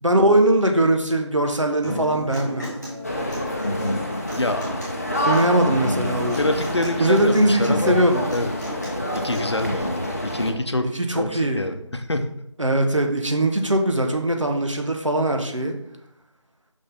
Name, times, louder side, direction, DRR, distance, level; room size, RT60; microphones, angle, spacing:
voice 1, 0.0-2.7 5.1-6.5 7.0-8.2 10.9-11.6 12.6-15.7, right 1 dB, 75° right, 4 dB, 1.3 m, -21 dB
Human voice / Acoustic guitar, 1.8-9.8, left 1 dB, 5° right, 1.1 m, -32 dB
sound 1, 3.0-10.5, left 1 dB, 30° left, 0.7 m, -28 dB
voice 2, 4.4-4.7 6.3-8.0 8.3-8.5 9.1-12.3, left 1 dB, 60° left, 7 dB, 0.8 m, -26 dB
6.0 x 5.5 x 3.6 m, 0.80 s
figure-of-eight pair, 170°, 16 cm